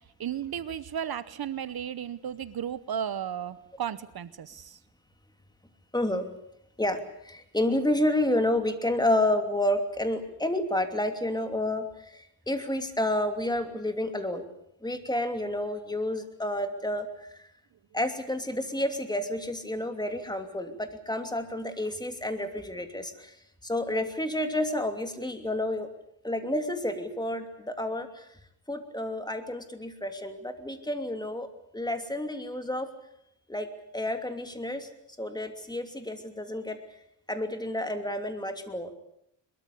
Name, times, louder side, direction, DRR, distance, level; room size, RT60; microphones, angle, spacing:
voice 1, 0.2-4.8, right 9 dB, 55° right, 15 dB, 0.9 m, -34 dB
voice 2, 5.9-6.3 6.8-14.4 14.8-17.5 17.9-23.4 23.6-25.9 26.2-28.3 28.7-31.5 31.7-32.9 33.5-33.7 33.9-34.9 35.2-36.8 37.3-38.9, left 1 dB, 10° left, 7 dB, 2.9 m, -30 dB
22.5 x 22.5 x 8.4 m, 0.74 s
wide cardioid pair, 115°, 44 cm